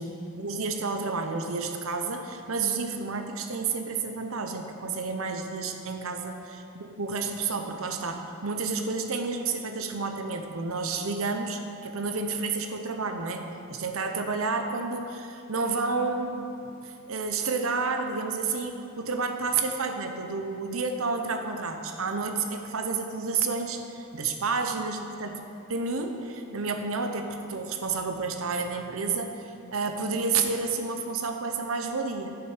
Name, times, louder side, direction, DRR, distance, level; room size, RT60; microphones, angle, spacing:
voice 1, 0.0-25.4 25.7-32.4, right 4 dB, 70° right, 5 dB, 0.8 m, -30 dB
8.7 x 7.3 x 5.0 m, 2.6 s
head